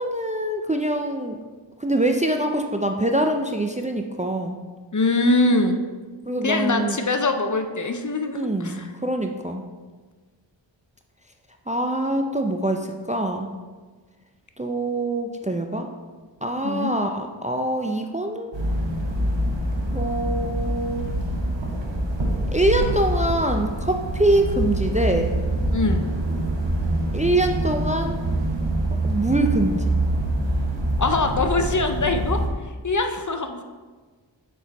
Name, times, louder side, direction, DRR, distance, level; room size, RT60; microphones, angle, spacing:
voice 1, 0.0-1.4 1.8-4.6 6.3-7.0 8.3-9.6 11.7-13.5 14.6-15.9 16.4-18.5 19.9-21.1 22.5-25.3 27.1-28.2 29.0-30.0, right 1 dB, 15° right, 4 dB, 0.4 m, -24 dB
voice 2, 4.9-5.8 6.4-8.9 16.6-16.9 25.7-26.0 31.0-32.4 32.8-33.6, left 2 dB, 40° left, 6 dB, 0.6 m, -23 dB
sound 1, 18.5-32.5, right 1 dB, 70° right, 1.0 m, -25 dB
6.4 x 4.3 x 4.0 m, 1.4 s
wide cardioid pair, 50°, 45 cm